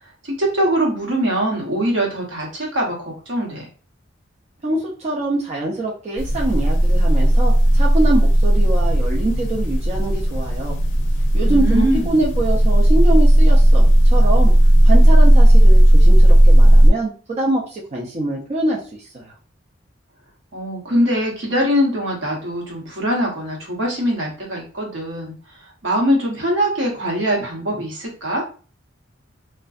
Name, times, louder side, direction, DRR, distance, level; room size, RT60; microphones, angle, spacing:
voice 1, 0.2-3.7 11.4-12.1 20.5-25.3 25.8-28.4, equal, 75° right, -1 dB, 0.9 m, -22 dB
voice 2, 4.6-10.8 11.3-14.5 14.8-19.3, right 2 dB, 35° right, -3 dB, 0.4 m, -24 dB
sound 1, 6.2-16.9, right 1 dB, 75° left, 0.5 m, -13 dB
2.5 x 2.1 x 2.3 m, 0.38 s
head